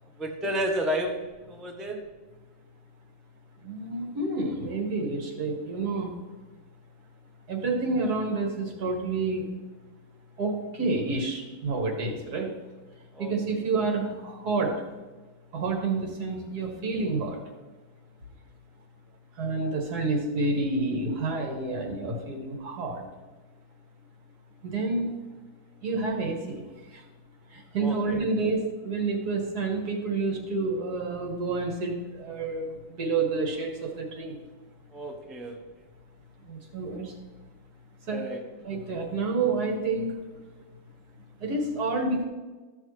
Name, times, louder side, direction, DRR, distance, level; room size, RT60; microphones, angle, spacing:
voice 1, 0.2-2.0 13.1-13.3 27.8-28.2 34.9-35.6 38.1-38.4, equal, ahead, 1 dB, 0.5 m, -31 dB
voice 2, 3.6-6.1 7.5-9.5 10.4-12.6 13.2-14.7 15.5-17.4 19.4-23.1 24.6-25.2 25.8-26.6 26.9-27.1 27.5-34.4 36.4-37.2 38.1-38.2 38.6-40.2 41.4-42.2, right 3 dB, 65° right, 1 dB, 2.0 m, -29 dB
13.5 x 6.5 x 3.2 m, 1.3 s
omnidirectional pair, 1.8 m